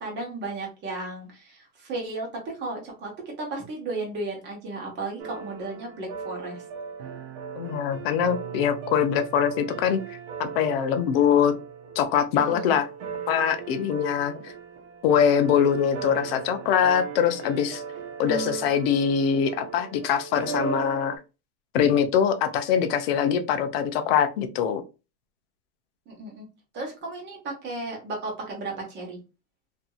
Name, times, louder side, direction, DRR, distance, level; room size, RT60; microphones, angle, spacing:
voice 1, 0.0-6.6 12.3-12.8 26.1-26.5 26.7-29.2, right 2 dB, 25° right, 0 dB, 1.0 m, -34 dB
sound 1, 5.2-21.2, right 6 dB, 50° right, 0.6 m, -37 dB
voice 2, 7.6-10.0 10.4-11.5 12.0-12.9 13.3-14.5 15.0-17.8 18.2-21.1 21.7-24.8, left 8 dB, 45° left, 8 dB, 0.5 m, -23 dB
2.6 x 2.6 x 2.4 m, 0.29 s
supercardioid pair, 150°, 45 cm